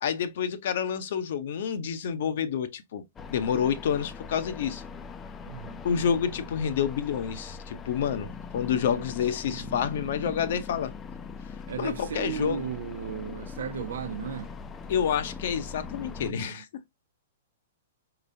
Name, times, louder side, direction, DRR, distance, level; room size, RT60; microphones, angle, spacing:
voice 1, 0.0-3.0 3.3-4.8 5.8-10.9 11.8-12.6 14.9-16.7, left 8 dB, 65° left, 0.8 m, -28 dB
sound 1, 3.2-16.3, left 5 dB, 20° left, 0.5 m, -41 dB
voice 2, 5.5-6.1 8.9-9.1 9.5-10.1 11.7-14.5 16.2-16.6, right 7 dB, 80° right, 0.8 m, -36 dB
4.3 x 3.9 x 2.7 m
hypercardioid pair, 130°, 0 cm